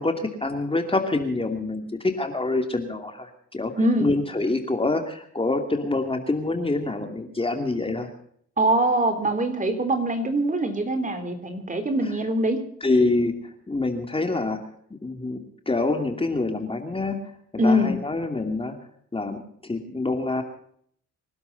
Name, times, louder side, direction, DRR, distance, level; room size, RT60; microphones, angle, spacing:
voice 1, 0.0-3.7 4.0-8.1 12.8-14.6 15.0-17.2 17.6-18.7 19.1-20.4, left 2 dB, 20° left, 5 dB, 2.7 m, -26 dB
voice 2, 3.8-4.1 8.6-12.6 17.6-17.9, right 1 dB, 25° right, 8 dB, 3.7 m, -23 dB
26.5 x 12.0 x 4.1 m, 0.64 s
cardioid pair, 90°, 30 cm